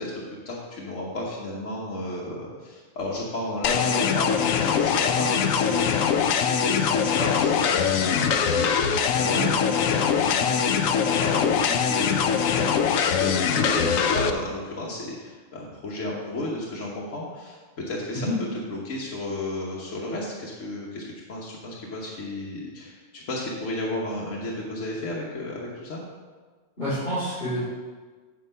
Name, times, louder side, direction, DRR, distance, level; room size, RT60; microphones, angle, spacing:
voice 1, 0.0-12.7 13.2-18.3 18.5-26.0, left 2 dB, 70° left, -5 dB, 1.5 m, -33 dB
sound 1, 3.6-14.3, left 7 dB, 90° left, 1.0 m, -22 dB
voice 2, 26.8-27.6, equal, 45° left, -13 dB, 3.1 m, -28 dB
8.4 x 4.8 x 5.4 m, 1.4 s
omnidirectional pair, 1.4 m